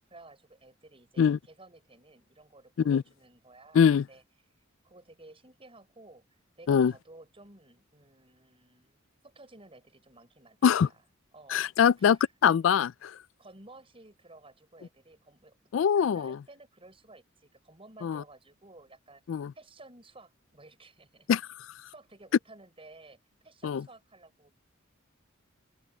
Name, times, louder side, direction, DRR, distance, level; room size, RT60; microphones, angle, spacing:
voice 1, 0.1-4.2 4.8-6.2 6.6-11.0 11.3-12.3 13.4-21.3 21.9-23.2 23.4-24.6, right 2 dB, 30° right, 5.9 m, -54 dB
voice 2, 11.5-12.2 12.4-13.1 15.7-16.4 18.0-18.2 19.3-19.5 21.3-21.4 23.6-23.8, left 7 dB, 65° left, 0.3 m, -23 dB
open air
head